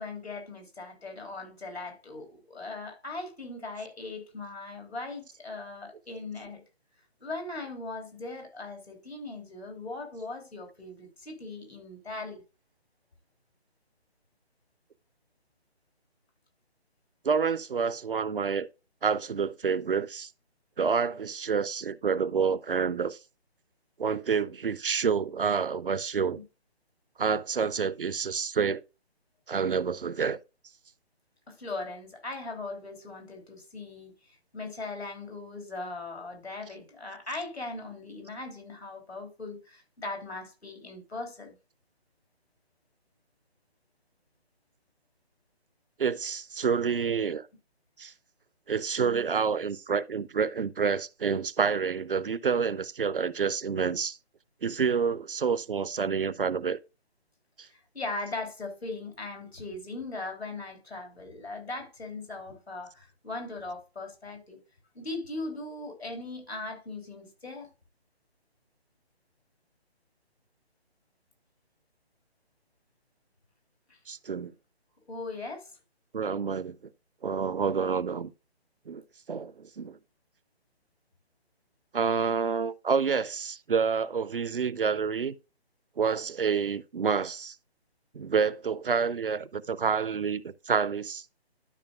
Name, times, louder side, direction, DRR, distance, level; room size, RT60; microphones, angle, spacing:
voice 1, 0.0-6.6 7.2-12.4 26.4-26.5 31.5-41.6 57.7-64.6 64.9-67.7 73.9-74.0 75.1-75.7, left 3 dB, 75° left, 3.0 m, -39 dB
voice 2, 17.2-18.7 19.0-20.3 20.8-23.2 24.0-26.4 27.2-28.8 29.5-30.4 46.0-47.5 48.0-48.1 48.7-54.2 54.6-56.8 57.6-57.7 74.1-74.5 76.1-76.8 77.2-78.3 78.9-79.0 79.3-80.0 81.9-85.3 86.0-87.6 88.1-91.2, right 6 dB, 55° right, 0.5 m, -28 dB
12.0 x 5.0 x 2.4 m
figure-of-eight pair, 145°, 32 cm